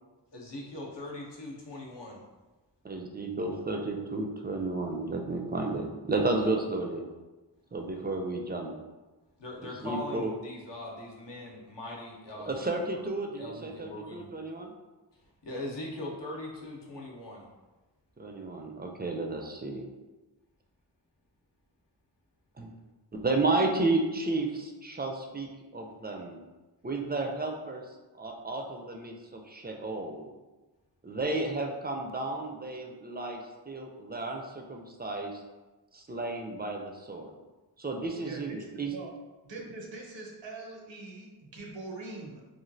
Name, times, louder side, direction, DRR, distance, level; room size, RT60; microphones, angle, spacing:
voice 1, 0.3-2.2 9.4-12.5 12.9-13.0 13.4-14.3 15.4-17.5, left 1 dB, 70° left, -2 dB, 0.7 m, -40 dB
voice 2, 2.8-7.0 7.7-8.7 9.6-10.3 12.4-14.7 18.2-19.8 22.6-22.7 23.1-26.4 26.8-27.8 28.1-30.3 31.0-35.4 35.9-37.3 37.8-38.9, right 2 dB, 25° right, 2 dB, 0.3 m, -32 dB
voice 3, 38.2-39.1 39.4-42.4, right 3 dB, 90° right, 0 dB, 0.7 m, -43 dB
3.1 x 2.3 x 2.6 m, 1.2 s
wide cardioid pair, 60°, 43 cm